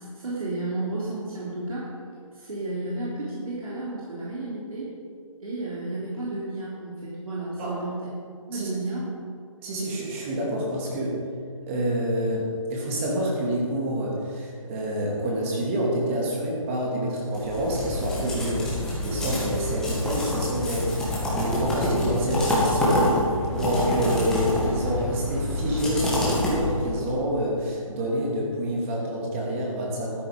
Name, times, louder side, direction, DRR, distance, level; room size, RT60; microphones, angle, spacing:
voice 1, 0.0-1.9 2.3-4.9 5.4-8.1 8.5-9.1, right 2 dB, 80° right, -7 dB, 3.5 m, -32 dB
voice 2, 9.6-11.2 11.7-18.7 19.0-23.0 23.5-30.3, equal, 20° right, -3 dB, 2.6 m, -27 dB
sound 1, 17.3-27.1, left 1 dB, 5° left, 1.8 m, -26 dB
13.0 x 9.4 x 5.4 m, 2.2 s
hypercardioid pair, 160°, 18 cm